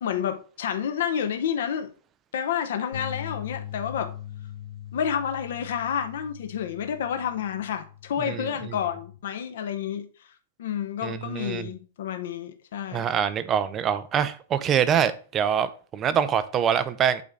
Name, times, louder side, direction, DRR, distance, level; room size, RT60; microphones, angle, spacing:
voice 1, 0.0-1.9 2.3-4.1 4.9-10.1 10.6-13.1, left 8 dB, 65° left, 0.8 m, -29 dB
sound 1, 2.9-9.2, left 11 dB, 85° left, 2.2 m, -41 dB
voice 2, 11.0-11.7 12.9-15.7 15.9-17.2, right 8 dB, 20° right, 0.5 m, -24 dB
8.4 x 3.7 x 4.0 m
supercardioid pair, 165°, 0 cm